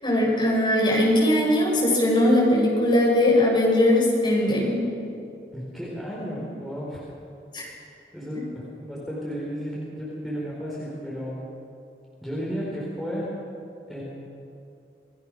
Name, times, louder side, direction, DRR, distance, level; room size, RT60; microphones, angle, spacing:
voice 1, 0.0-4.8 7.5-7.6, left 1 dB, 25° left, -4 dB, 7.3 m, -20 dB
voice 2, 5.5-7.0 8.1-11.4 12.2-13.4 13.9-14.0, equal, ahead, -7 dB, 4.5 m, -33 dB
28.0 x 20.0 x 6.5 m, 2.7 s
head